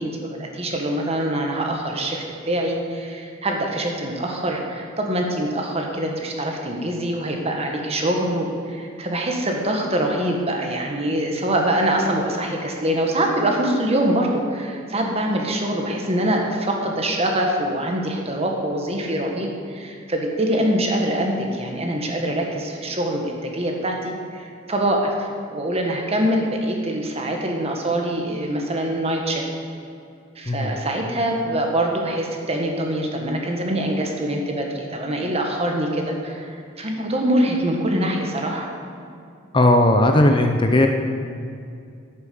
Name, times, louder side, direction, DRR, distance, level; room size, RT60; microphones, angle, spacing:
voice 1, 0.0-29.5 30.4-38.7, right 1 dB, 30° right, 1 dB, 1.6 m, -24 dB
voice 2, 39.5-40.9, left 1 dB, 25° left, 4 dB, 0.6 m, -16 dB
10.5 x 8.6 x 7.0 m, 2.4 s
head